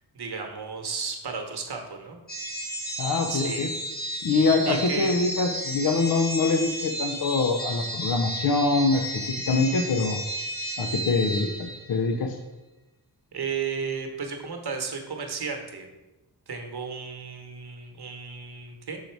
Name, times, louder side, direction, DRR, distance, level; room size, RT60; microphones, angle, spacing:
voice 1, 0.1-2.2 3.3-3.7 4.6-5.1 13.3-15.9 16.5-19.0, right 5 dB, 65° right, 3 dB, 1.1 m, -33 dB
sound 1, 2.3-12.1, right 1 dB, 25° left, 1.6 m, -33 dB
voice 2, 3.0-3.7 4.2-10.2 10.8-12.4, left 3 dB, 60° left, 5 dB, 0.6 m, -24 dB
6.5 x 4.0 x 4.5 m, 1.1 s
wide cardioid pair, 95°, 41 cm